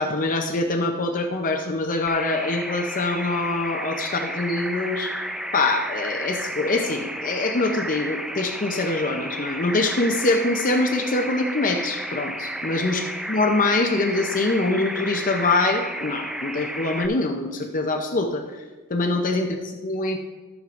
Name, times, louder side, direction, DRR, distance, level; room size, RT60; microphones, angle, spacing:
voice 1, 0.0-5.1 5.5-13.0 13.3-18.4 18.9-20.2, left 2 dB, 40° left, 3 dB, 0.6 m, -24 dB
sound 1, 2.1-17.1, equal, ahead, 0.3 m, -32 dB
14.0 x 7.2 x 2.5 m, 1.2 s
head